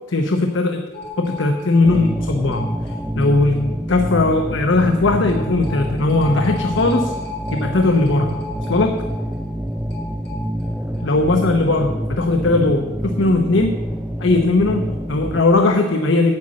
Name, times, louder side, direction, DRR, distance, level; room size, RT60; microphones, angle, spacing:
voice 1, 0.1-0.8 1.2-2.7 3.1-7.1 7.5-8.4 8.7-9.0 11.0-13.7 14.2-16.4, left 2 dB, 75° left, 4 dB, 0.8 m, -18 dB
sound 1, 0.9-3.7 3.9-4.0 4.3-4.4 5.3-11.0 11.3-11.4 11.7-11.8, left 3 dB, 55° left, 3.9 m, -34 dB
sound 2, 1.8-15.4, equal, 5° right, 0.4 m, -27 dB
8.9 x 6.3 x 8.5 m, 1.4 s
head